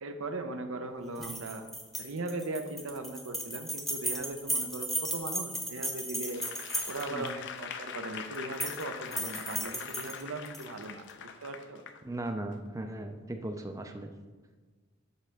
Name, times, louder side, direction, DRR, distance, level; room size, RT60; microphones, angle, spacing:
voice 1, 0.0-1.6 2.0-6.5 6.9-11.8, right 2 dB, 75° right, 7 dB, 0.7 m, -39 dB
sound 1, 1.2-7.3 8.3-8.8 9.1-10.6, right 1 dB, ahead, 0.9 m, -35 dB
Applause / Crowd, 6.3-12.0 12.5-12.7, left 7 dB, 60° left, 0.5 m, -42 dB
voice 2, 12.0-14.1, right 1 dB, 15° right, 5 dB, 0.4 m, -38 dB
8.1 x 3.4 x 6.3 m, 1.4 s
head